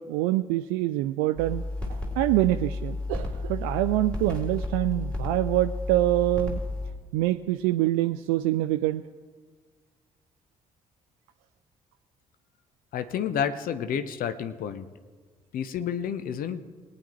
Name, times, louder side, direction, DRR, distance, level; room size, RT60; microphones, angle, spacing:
voice 1, 0.0-1.6 2.2-6.6 7.1-9.0, right 16 dB, 65° right, 9 dB, 0.4 m, -25 dB
sound 1, 1.4-6.9, left 2 dB, 5° left, 3.9 m, -32 dB
voice 2, 12.9-14.9 15.5-16.6, left 8 dB, 55° left, 9 dB, 0.9 m, -30 dB
21.5 x 9.9 x 3.1 m, 1.5 s
figure-of-eight pair, 40°, 18 cm